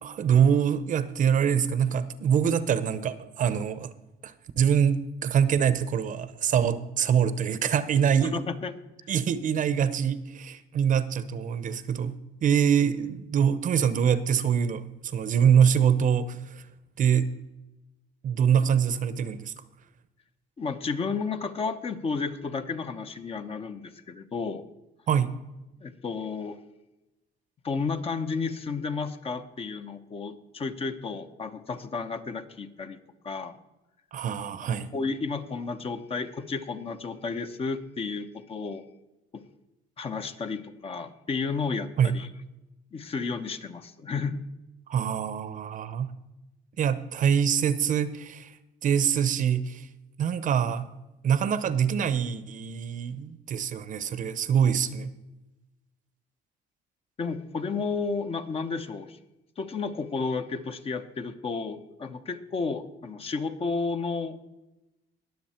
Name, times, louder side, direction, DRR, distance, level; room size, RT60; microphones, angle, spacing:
voice 1, 0.0-3.9 4.2-8.4 9.1-12.2 12.4-16.6 17.0-17.3 18.2-19.5 25.1-25.3 34.1-34.9 42.0-42.2 44.9-46.1 46.8-48.5 48.8-49.9 50.2-50.9 51.2-55.1, right 8 dB, 50° right, 15 dB, 0.8 m, -24 dB
voice 2, 8.2-8.7 9.0-9.1 20.6-24.6 25.8-26.6 27.6-33.0 33.2-33.6 34.6-38.8 39.3-39.4 40.0-42.3 42.9-44.4 57.2-59.2 59.6-64.4, left 4 dB, 35° left, 8 dB, 1.0 m, -32 dB
20.0 x 7.2 x 4.4 m, 1.0 s
cardioid pair, 110°, 17 cm